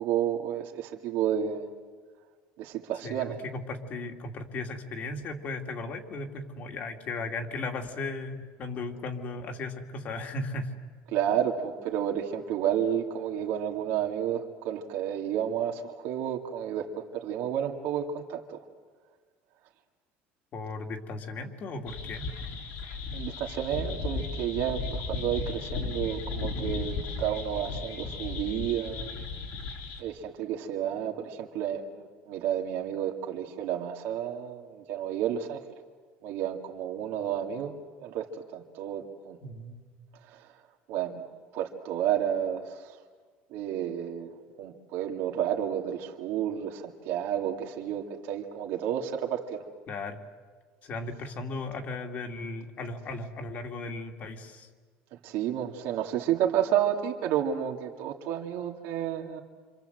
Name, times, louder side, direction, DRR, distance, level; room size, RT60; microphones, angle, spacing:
voice 1, 0.0-1.7 2.6-3.4 11.1-18.4 23.1-29.1 30.0-35.6 36.2-37.7 38.0-39.4 40.3-40.5 40.9-41.2 41.5-42.9 43.5-44.3 44.6-49.6 55.2-59.4, right 10 dB, 70° right, 1 dB, 2.3 m, -31 dB
voice 2, 3.0-10.7 20.5-22.3 39.4-39.8 49.9-50.2 50.8-54.7, left 2 dB, 45° left, 3 dB, 2.5 m, -36 dB
sound 1, 21.9-30.0, left 4 dB, 75° left, 4.4 m, -35 dB
26.5 x 26.5 x 7.9 m, 1.5 s
cardioid pair, 135°, 4 cm